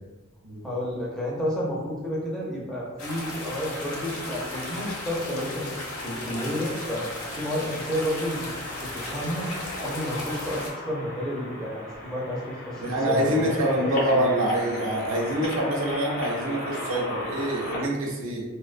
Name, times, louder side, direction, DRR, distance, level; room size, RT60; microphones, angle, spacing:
voice 1, 0.6-7.1 7.4-8.5 8.8-9.5 9.8-13.6 14.1-14.3, equal, 5° left, -6 dB, 0.4 m, -31 dB
sound 1, 3.0-10.7, left 1 dB, 90° left, 0.5 m, -35 dB
sound 2, 6.1-17.8, left 1 dB, 40° left, 0.8 m, -37 dB
voice 2, 12.8-18.4, right 1 dB, 75° right, -1 dB, 0.5 m, -25 dB
2.4 x 2.2 x 2.4 m, 1.1 s
head